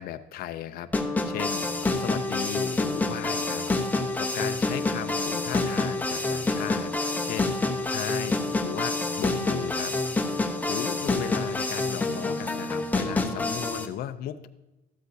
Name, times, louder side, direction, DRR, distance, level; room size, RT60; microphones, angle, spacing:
voice 1, 0.0-3.6 3.9-10.0 10.3-14.5, left 11 dB, 65° left, 10 dB, 0.5 m, -36 dB
sound 1, 0.9-13.9, left 2 dB, 10° left, 0.8 m, -27 dB
12.5 x 8.1 x 2.7 m, 1.0 s
cardioid pair, 110°, 17 cm